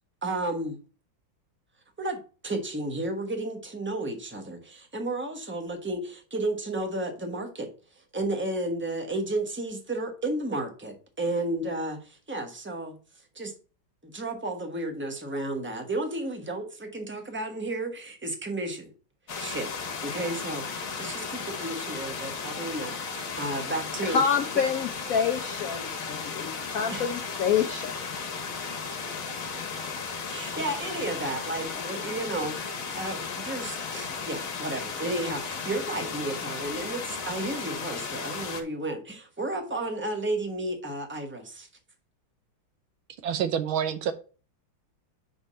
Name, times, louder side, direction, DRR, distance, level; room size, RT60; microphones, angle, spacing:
voice 1, 0.2-0.8 2.0-7.7 8.1-13.0 13.3-13.5 14.0-18.9 19.4-24.2 26.9-27.1 30.2-41.7, right 2 dB, 10° right, 0.8 m, -32 dB
sound 1, 19.3-38.6, left 5 dB, 50° left, 1.3 m, -35 dB
voice 2, 24.0-28.0, left 7 dB, 70° left, 0.8 m, -27 dB
voice 3, 43.2-44.1, right 8 dB, 80° right, 1.6 m, -27 dB
5.1 x 4.7 x 5.5 m
omnidirectional pair, 2.2 m